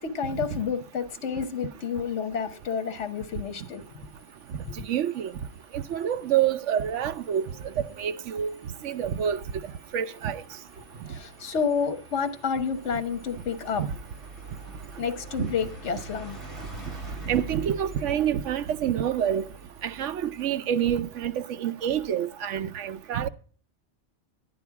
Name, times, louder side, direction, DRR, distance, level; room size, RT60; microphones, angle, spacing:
voice 1, 0.0-3.8 4.5-4.6 11.1-13.8 15.0-16.4, left 6 dB, 70° left, 1.4 m, -30 dB
sound 1, 2.6-21.1, right 2 dB, 45° right, 5.0 m, -47 dB
Bowed string instrument, 4.4-19.1, right 2 dB, 10° left, 6.9 m, -59 dB
voice 2, 4.8-5.3 5.7-7.4 8.0-8.5 8.8-9.4 9.9-10.4 15.4-15.5 17.3-19.4 19.8-21.3 21.6-23.3, right 9 dB, 80° right, 1.0 m, -27 dB
10.5 x 9.3 x 4.6 m
omnidirectional pair, 1.2 m